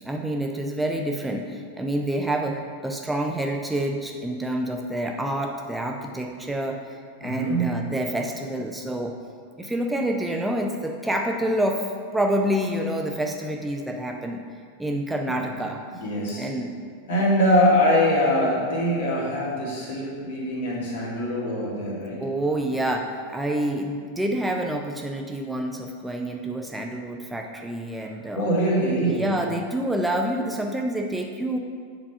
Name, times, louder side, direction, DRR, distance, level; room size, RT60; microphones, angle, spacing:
voice 1, 0.0-9.1 9.6-14.4 14.8-15.8 16.4-16.7 22.2-28.5 29.0-31.6, right 1 dB, 5° right, 2 dB, 0.5 m, -27 dB
voice 2, 7.2-7.7 15.3-15.4 16.0-16.5 17.1-22.2 28.3-29.3, equal, 55° left, -4 dB, 2.0 m, -23 dB
7.7 x 4.0 x 5.5 m, 2.1 s
figure-of-eight pair, 90°, 0 cm